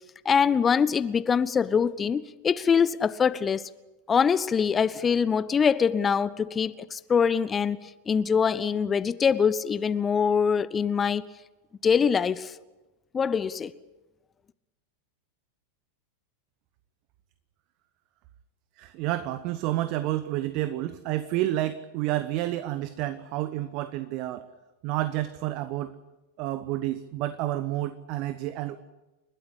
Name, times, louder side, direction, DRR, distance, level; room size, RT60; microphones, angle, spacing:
voice 1, 0.2-3.6 4.1-11.2 11.8-12.5 13.1-13.7, left 6 dB, 20° left, 0.7 m, -24 dB
voice 2, 18.8-24.5 24.8-26.0 26.4-28.8, right 14 dB, 40° right, 0.9 m, -30 dB
30.0 x 12.5 x 9.9 m
figure-of-eight pair, 90°, 0 cm